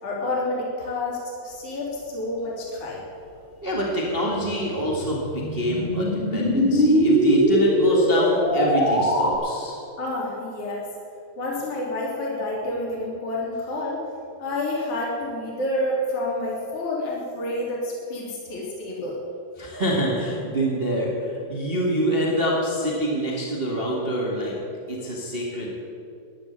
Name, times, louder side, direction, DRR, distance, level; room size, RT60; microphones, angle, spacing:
voice 1, 0.0-3.0 10.0-10.9 11.4-14.0 14.4-19.2, left 1 dB, 40° left, -4 dB, 3.6 m, -29 dB
voice 2, 3.6-9.8 19.6-24.6 24.9-25.7, right 1 dB, 40° right, -3 dB, 0.8 m, -25 dB
sound 1, 4.4-9.4, equal, 15° left, 2.8 m, -21 dB
11.0 x 11.0 x 8.1 m, 2.6 s
omnidirectional pair, 4.7 m